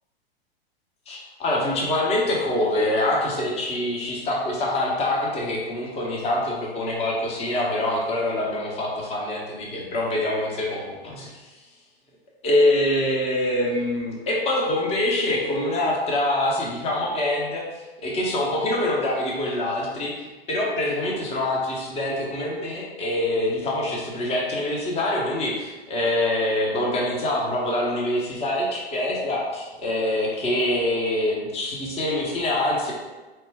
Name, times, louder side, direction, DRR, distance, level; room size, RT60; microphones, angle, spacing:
voice 1, 1.1-11.5 12.4-17.6 18.0-20.1 20.5-32.9, left 1 dB, 20° left, -3 dB, 0.7 m, -25 dB
4.3 x 2.1 x 3.3 m, 1.2 s
hypercardioid pair, 110°, 31 cm